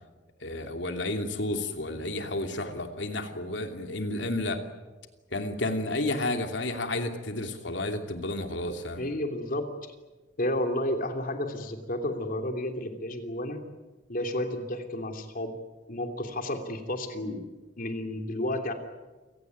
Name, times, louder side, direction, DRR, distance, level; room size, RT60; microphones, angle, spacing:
voice 1, 0.4-4.6 5.3-9.1, left 2 dB, 75° left, 5 dB, 2.9 m, -31 dB
voice 2, 9.0-9.7 10.4-13.6 14.1-15.5 15.9-17.4 17.8-18.7, left 1 dB, 50° left, 5 dB, 3.1 m, -31 dB
28.5 x 17.5 x 9.6 m, 1.2 s
head